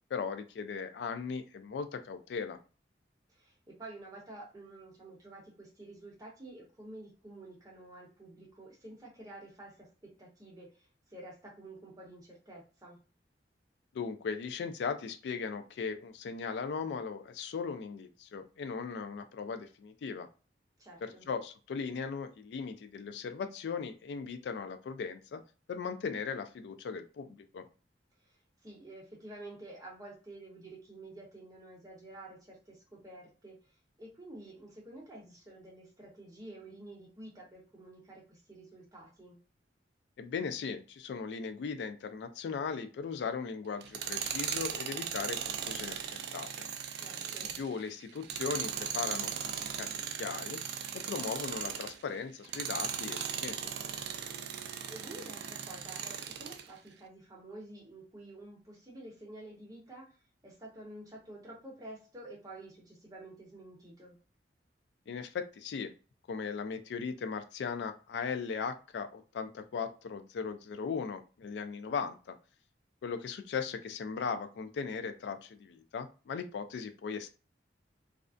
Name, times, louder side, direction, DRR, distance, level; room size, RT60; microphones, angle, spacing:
voice 1, 0.1-2.6 13.9-20.3 21.0-25.4 25.7-27.7 40.2-46.0 46.3-46.7 47.6-49.9 50.1-50.6 50.9-53.6 65.1-65.9 66.3-72.4 73.0-77.3, left 5 dB, 70° left, 9 dB, 0.3 m, -38 dB
voice 2, 3.3-13.0 20.8-21.2 28.2-28.4 28.6-33.6 34.0-39.4 47.0-47.6 54.9-60.1 60.4-64.2, right 2 dB, 20° right, -3 dB, 0.8 m, -50 dB
Tools, 43.8-52.0 52.4-56.7, right 8 dB, 65° right, 0.3 m, -38 dB
2.4 x 2.1 x 2.4 m, 0.35 s
head